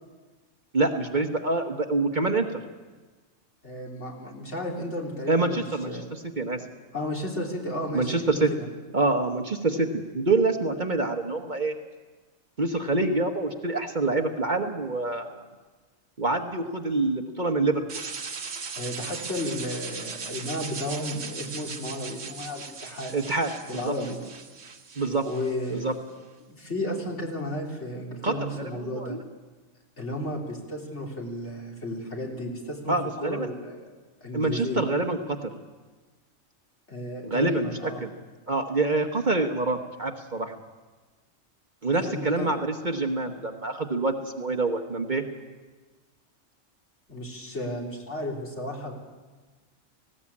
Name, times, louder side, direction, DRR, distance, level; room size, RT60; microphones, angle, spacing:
voice 1, 0.7-2.5 5.3-6.6 7.9-8.5 8.9-11.7 12.6-15.4 16.2-18.0 23.1-23.9 25.0-25.3 25.7-25.9 28.2-29.2 32.9-33.5 34.3-35.4 37.2-37.7 38.0-38.1 38.5-40.5 41.8-45.2, right 3 dB, 40° right, 5 dB, 1.3 m, -26 dB
voice 2, 3.6-6.1 6.9-8.7 18.7-23.2 23.7-24.2 25.3-25.9 26.5-29.2 30.0-33.8 34.2-34.8 36.9-38.0 41.9-42.5 47.1-48.9, left 1 dB, 60° left, -1 dB, 3.8 m, -33 dB
sound 1, 17.9-25.9, right 5 dB, 70° right, 1.7 m, -38 dB
19.0 x 16.5 x 8.6 m, 1.3 s
omnidirectional pair, 1.3 m